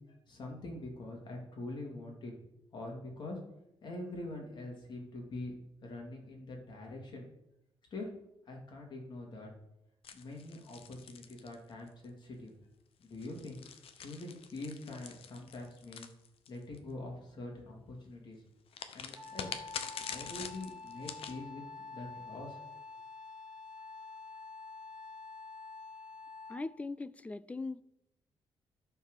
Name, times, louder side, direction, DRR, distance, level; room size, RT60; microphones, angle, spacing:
voice 1, 0.0-2.3 2.7-3.4 3.8-5.5 5.8-7.3 7.9-8.1 8.5-9.5 10.1-12.5 13.0-13.6 14.0-16.1 16.5-18.4 18.9-19.5 20.0-22.6, left 2 dB, 50° left, 3.0 m, -44 dB
sound 1, 10.0-12.0 13.0-16.8 18.7-21.4, left 7 dB, 75° left, 0.9 m, -45 dB
Wind instrument woodwind instrument, 19.1-26.8, left 4 dB, 45° right, 1.8 m, -48 dB
voice 2, 26.5-27.8, left 3 dB, 15° left, 0.3 m, -40 dB
13.0 x 4.7 x 6.6 m
wide cardioid pair, 160°, 10 cm